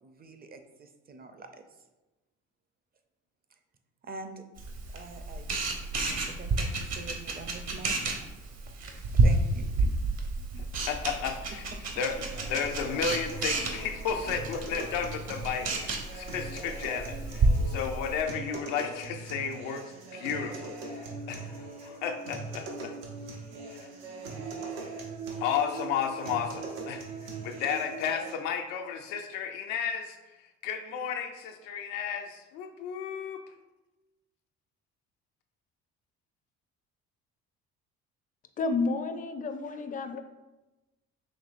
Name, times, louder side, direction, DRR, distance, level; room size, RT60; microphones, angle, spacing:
voice 1, 0.0-1.6 4.0-4.4 4.9-8.3 9.0-9.7 11.8-12.0, right 3 dB, 30° right, 7 dB, 0.5 m, -46 dB
Camera, 4.6-18.2, right 2 dB, 55° right, 0.9 m, -30 dB
voice 2, 10.8-11.6 12.0-12.2 12.5-19.8 20.1-22.9 23.7-23.8 25.4-30.2 30.6-33.4, left 7 dB, 85° left, 4 dB, 0.6 m, -33 dB
sound 1, 12.3-28.3, right 3 dB, 85° right, 0.8 m, -41 dB
voice 3, 38.6-40.2, left 3 dB, 25° left, 7 dB, 0.4 m, -30 dB
5.2 x 3.1 x 2.5 m, 1.1 s
supercardioid pair, 70°, 31 cm